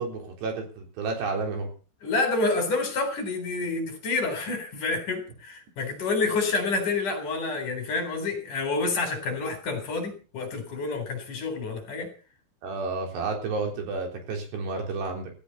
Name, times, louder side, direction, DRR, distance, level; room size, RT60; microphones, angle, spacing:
voice 1, 0.0-1.7 12.6-15.3, right 4 dB, 70° right, 3 dB, 5.8 m, -31 dB
voice 2, 2.0-12.1, left 3 dB, 50° left, 7 dB, 5.3 m, -28 dB
17.0 x 15.5 x 4.2 m, 0.35 s
omnidirectional pair, 5.0 m